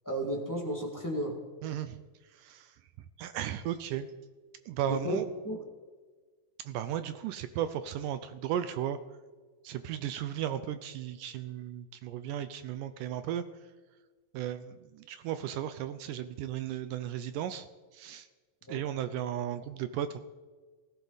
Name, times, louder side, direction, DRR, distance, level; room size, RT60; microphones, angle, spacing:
voice 1, 0.0-1.3 4.9-5.6 18.7-18.8, equal, 10° left, -1 dB, 1.0 m, -33 dB
voice 2, 1.6-2.0 2.3-2.7 3.2-4.1 4.7-5.3 6.7-9.0 9.6-13.4 14.3-17.7 17.9-18.3 18.7-20.2, right 10 dB, 80° right, 11 dB, 2.1 m, -35 dB
18.0 x 16.0 x 4.1 m, 1.4 s
omnidirectional pair, 4.0 m